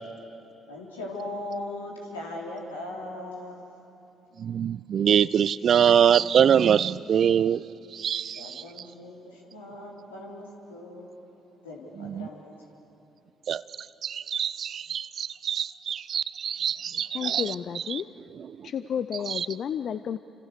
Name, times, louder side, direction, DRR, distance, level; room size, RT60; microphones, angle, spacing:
voice 1, 0.7-3.7 8.4-11.4 11.6-12.7, left 1 dB, 90° left, -2 dB, 3.6 m, -39 dB
voice 2, 4.4-7.6 7.9-8.5 12.2-12.3 13.5-13.6 14.0-17.4 17.9-18.0 19.4-19.5, right 8 dB, 55° right, 19 dB, 0.5 m, -23 dB
voice 3, 17.1-18.1 18.6-20.2, left 8 dB, 60° left, 13 dB, 0.6 m, -31 dB
30.0 x 26.0 x 6.7 m, 2.9 s
hypercardioid pair, 45°, 0 cm